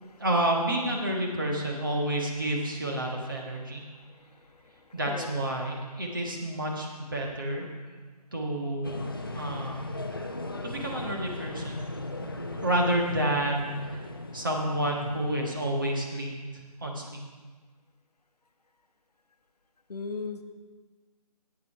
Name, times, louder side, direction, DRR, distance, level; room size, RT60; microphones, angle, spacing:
voice 1, 0.2-3.8 4.9-7.7 8.3-9.0 9.3-9.8 10.6-11.8 12.2-14.0 14.3-17.2, right 1 dB, 30° right, -1 dB, 1.3 m, -30 dB
voice 2, 4.0-5.3 19.9-20.4, left 4 dB, 70° left, 7 dB, 0.9 m, -39 dB
sound 1, 8.8-16.0, left 2 dB, 35° left, 0.6 m, -38 dB
8.6 x 7.9 x 5.5 m, 1.4 s
figure-of-eight pair, 175°, 21 cm